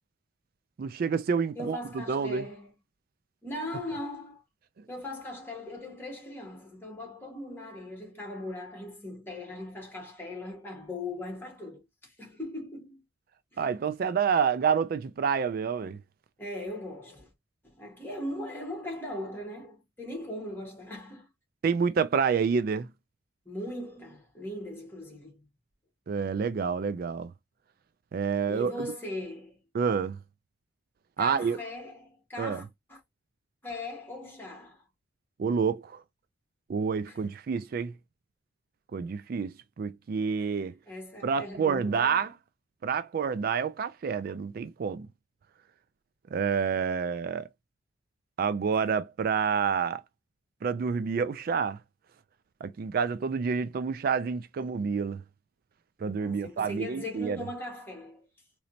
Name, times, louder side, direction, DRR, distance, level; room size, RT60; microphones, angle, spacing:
voice 1, 0.8-1.8 2.1-2.4 13.6-16.0 21.6-22.9 26.1-27.3 28.1-28.9 29.7-30.2 31.2-31.6 32.4-32.6 35.4-36.0 36.7-37.9 38.9-40.7 41.2-42.3 42.8-45.1 46.3-47.5 48.4-50.0 50.6-51.8 52.6-55.2 56.0-57.4, right 6 dB, 50° right, 0.3 m, -28 dB
voice 2, 1.5-2.7 3.4-4.4 4.9-13.0 13.5-13.6 16.4-17.3 17.6-21.3 23.5-25.5 28.5-29.6 31.2-33.0 33.6-34.9 37.1-37.2 40.4-40.5 40.9-42.3 54.6-54.8 56.2-58.3, left 1 dB, 10° left, 1.8 m, -39 dB
3.9 x 3.1 x 2.7 m
head